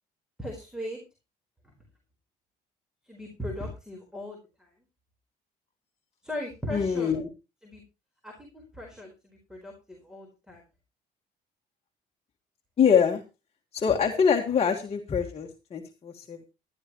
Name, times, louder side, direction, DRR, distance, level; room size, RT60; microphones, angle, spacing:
voice 1, 0.4-1.0 1.6-1.7 3.0-4.7 6.2-7.2 7.6-7.8 8.2-10.6, left 1 dB, 5° right, 2 dB, 4.3 m, -38 dB
voice 2, 6.7-7.3 12.8-13.2 13.7-16.4, left 7 dB, 35° left, 2 dB, 1.7 m, -24 dB
16.0 x 12.0 x 3.1 m, 0.29 s
cardioid pair, 110°, 17 cm